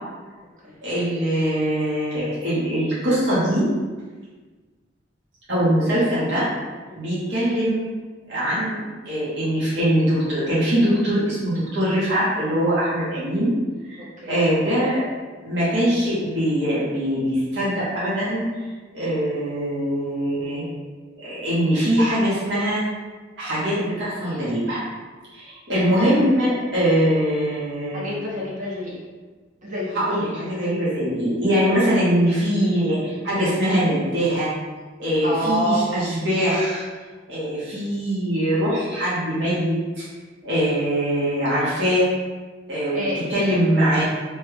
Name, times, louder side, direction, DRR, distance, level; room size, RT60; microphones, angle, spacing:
voice 1, 0.8-3.7 5.5-6.5 7.0-7.8 8.3-13.5 13.8-14.0 14.3-15.1 15.4-18.5 18.9-20.6 21.2-22.8 23.4-24.8 25.3-28.1 29.9-34.5 35.0-36.8 37.3-40.0 40.4-42.1 42.7-43.0 43.3-44.0, equal, 70° right, -10 dB, 1.1 m, -22 dB
voice 2, 27.9-29.0 29.6-30.5 35.2-35.9 42.9-43.3, equal, 45° right, -5 dB, 0.8 m, -27 dB
3.0 x 2.3 x 3.2 m, 1.4 s
head